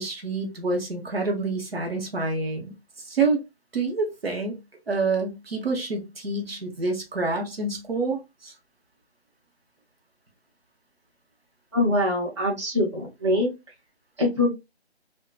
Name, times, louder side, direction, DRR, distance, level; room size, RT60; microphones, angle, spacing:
voice 1, 0.0-2.7 3.1-3.4 3.7-4.6 4.9-8.5, right 3 dB, 60° right, 1.0 m, -27 dB
voice 2, 11.7-13.5 14.2-14.5, left 1 dB, 25° right, 0.8 m, -23 dB
2.6 x 2.2 x 2.3 m
figure-of-eight pair, 175°, 33 cm